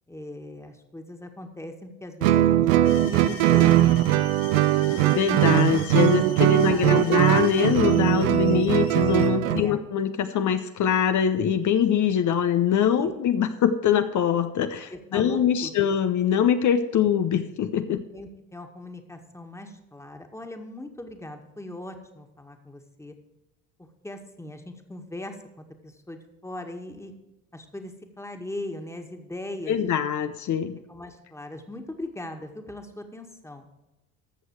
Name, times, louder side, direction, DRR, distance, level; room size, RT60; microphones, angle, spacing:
voice 1, 0.1-3.7 4.7-7.2 8.4-8.7 9.4-9.8 13.0-13.1 14.9-15.9 17.9-23.2 23.8-27.1 27.5-29.8 30.9-33.7, left 1 dB, 5° left, 5 dB, 1.8 m, -39 dB
Guitar, 2.2-9.7, right 14 dB, 85° right, 0.6 m, -20 dB
sound 1, 2.8-9.3, left 7 dB, 80° left, 1.4 m, -43 dB
voice 2, 5.1-18.0 29.7-30.8, left 8 dB, 50° left, 9 dB, 0.9 m, -23 dB
14.0 x 6.3 x 4.7 m, 1.0 s
hypercardioid pair, 65°, 38 cm